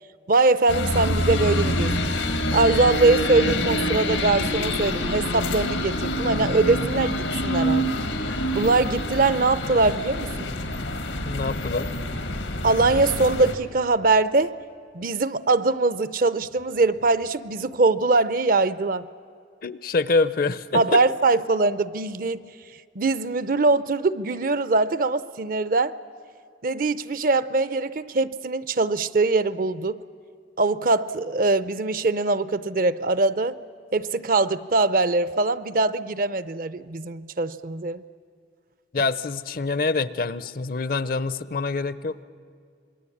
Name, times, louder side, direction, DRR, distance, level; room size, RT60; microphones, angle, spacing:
voice 1, 0.3-2.1 2.5-7.9 8.2-10.5 12.6-14.5 14.9-19.1 20.7-22.4 23.0-26.0 26.6-30.0 30.6-33.6 33.9-38.0, right 3 dB, 45° right, 16 dB, 0.6 m, -22 dB
sound 1, 0.7-13.5, left 1 dB, 90° left, 1.9 m, -26 dB
voice 2, 11.2-11.9 19.6-21.0 38.9-42.2, left 3 dB, 50° left, 16 dB, 0.6 m, -25 dB
26.5 x 21.5 x 8.6 m, 2.2 s
head